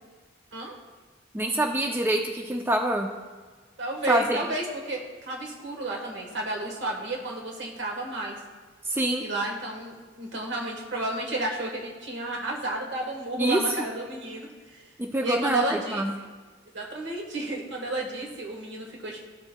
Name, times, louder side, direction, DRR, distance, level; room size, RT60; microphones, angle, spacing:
voice 1, 1.3-3.1 4.1-4.4 8.9-9.2 13.4-13.6 15.0-16.1, right 1 dB, 10° right, 2 dB, 0.3 m, -25 dB
voice 2, 3.8-8.4 9.2-14.8 15.2-16.0 16.7-19.3, right 2 dB, 60° right, 0 dB, 1.3 m, -32 dB
13.0 x 4.4 x 2.2 m, 1.4 s
head